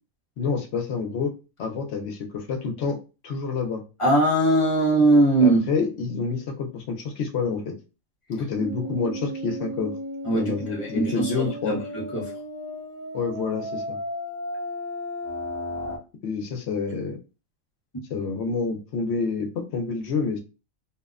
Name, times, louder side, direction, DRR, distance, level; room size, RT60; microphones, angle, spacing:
voice 1, 0.4-1.3 1.6-3.0 3.2-3.8 5.4-7.7 8.3-9.9 10.3-11.8 13.1-14.0 16.2-17.2 18.1-20.4, left 5 dB, 65° left, 0.8 m, -28 dB
voice 2, 4.0-5.6 10.2-12.3, right 2 dB, 30° left, 0.8 m, -21 dB
sound 1, 8.6-16.0, equal, 50° right, 0.6 m, -34 dB
2.6 x 2.1 x 2.3 m
omnidirectional pair, 1.4 m